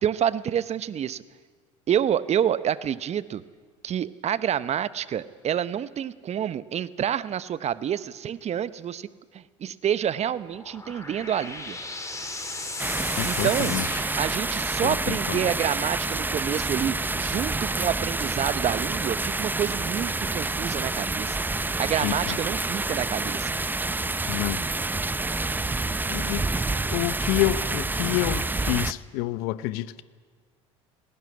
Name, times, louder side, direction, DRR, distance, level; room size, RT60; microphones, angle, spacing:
voice 1, 0.0-1.2 1.9-3.4 3.8-9.1 9.3-11.8 13.2-13.7 14.2-23.5, right 9 dB, 40° right, 1.0 m, -28 dB
sound 1, 10.3-14.9, left 2 dB, 20° left, 4.4 m, -36 dB
sound 2, 12.8-28.9, right 3 dB, 10° right, 0.7 m, -28 dB
voice 2, 13.2-13.9 14.8-15.5 22.0-22.4 24.3-24.6 26.1-26.4 26.9-30.0, left 17 dB, 65° left, 0.8 m, -28 dB
18.5 x 18.5 x 9.7 m
hypercardioid pair, 65°, 17 cm